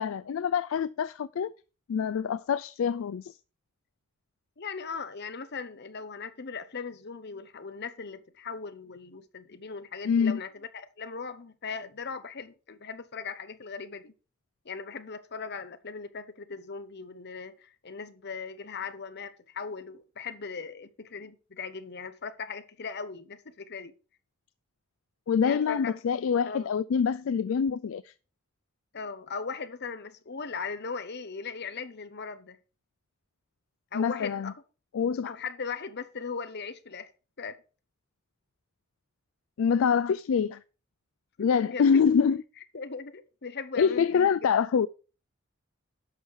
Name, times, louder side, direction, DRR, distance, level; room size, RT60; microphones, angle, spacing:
voice 1, 0.0-1.5 1.9-3.3 10.1-10.4 25.3-28.1 33.9-34.5 34.9-35.3 39.6-40.6 41.4-42.4 43.8-44.9, left 6 dB, 65° left, 0.3 m, -25 dB
voice 2, 4.6-14.1 14.6-23.9 25.4-26.0 26.5-26.7 28.9-32.6 33.9-34.5 35.2-37.1 37.4-37.6 41.4-41.9 42.7-44.3, left 5 dB, 50° left, 1.0 m, -39 dB
11.0 x 6.4 x 4.7 m
head